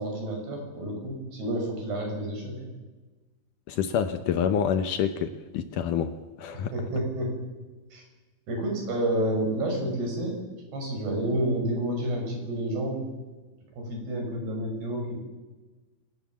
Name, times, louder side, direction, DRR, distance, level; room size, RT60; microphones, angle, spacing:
voice 1, 0.0-2.7 6.5-7.3 7.9-8.0 8.5-10.5 10.7-13.1 13.8-15.3, right 1 dB, 85° right, 2 dB, 8.2 m, -30 dB
voice 2, 3.7-6.7, left 8 dB, 70° left, 9 dB, 2.1 m, -27 dB
28.5 x 18.0 x 7.4 m, 1.2 s
omnidirectional pair, 4.5 m